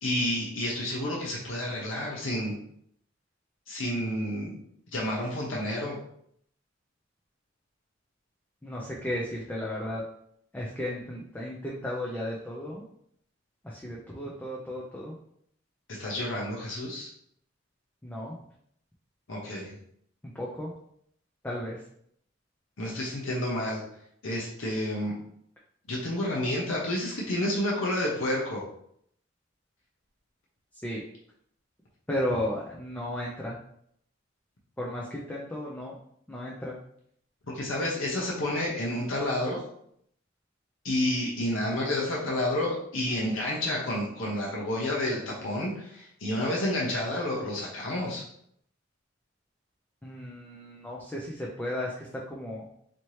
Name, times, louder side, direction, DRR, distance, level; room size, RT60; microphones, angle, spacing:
voice 1, 0.0-2.6 3.7-4.5 4.9-6.0 15.9-17.1 19.3-19.7 22.8-23.8 24.2-25.2 25.9-28.6 37.5-39.6 40.8-48.2, left 1 dB, 85° left, -3 dB, 0.8 m, -30 dB
voice 2, 8.6-10.0 10.5-12.8 13.6-15.2 18.0-18.4 20.2-20.7 21.4-21.8 30.8-31.0 32.1-33.6 34.8-36.0 36.3-36.7 50.0-52.8, left 1 dB, 10° left, -4 dB, 0.5 m, -34 dB
4.3 x 2.8 x 3.1 m, 0.69 s
head